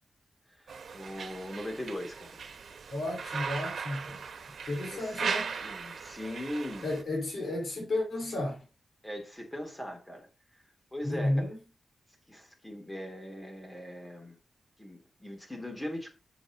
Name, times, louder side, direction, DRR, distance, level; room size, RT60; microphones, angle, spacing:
voice 1, 0.5-2.4 4.8-5.2 5.6-6.9 9.0-10.3 10.9-11.5 12.3-14.4 14.8-16.1, left 1 dB, 10° left, 2.9 m, -40 dB
sound 1, 0.7-7.0, right 6 dB, 80° right, 1.2 m, -38 dB
voice 2, 2.9-4.2 4.6-5.8 6.8-8.6 11.0-11.6, left 1 dB, 65° left, 4.5 m, -32 dB
11.5 x 7.4 x 3.0 m
wide cardioid pair, 120°, 0 cm